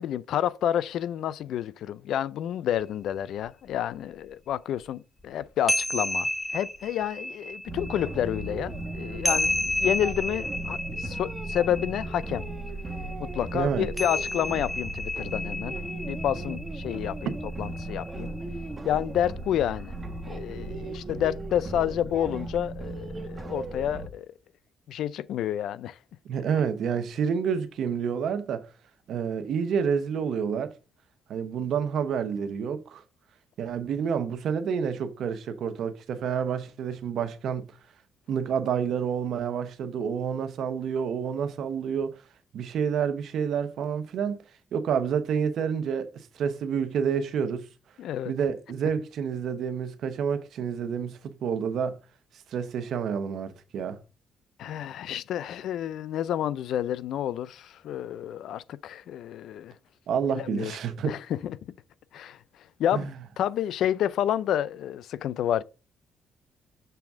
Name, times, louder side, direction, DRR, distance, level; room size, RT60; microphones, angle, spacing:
voice 1, 0.0-12.4 13.2-18.3 18.8-19.9 20.3-24.3 24.9-26.0 48.0-48.3 54.6-59.7 60.3-60.7 61.0-61.6 62.1-62.4 62.8-63.1 63.4-65.6, left 10 dB, 75° left, 0.4 m, -29 dB
sound 1, 2.8-2.9 3.5-3.6 3.9-4.0 5.2-18.7, left 1 dB, 5° left, 0.8 m, -32 dB
sound 2, 7.7-24.1, right 2 dB, 30° right, 1.2 m, -36 dB
voice 2, 13.5-13.9 26.3-28.7 29.1-30.7 31.3-33.0 33.6-37.7 38.3-42.2 42.5-44.4 44.7-46.1 46.4-47.7 48.2-52.0 52.5-54.0 60.1-61.2 62.9-63.1, right 7 dB, 70° right, 0.9 m, -29 dB
6.9 x 3.5 x 6.0 m
cardioid pair, 90°, 0 cm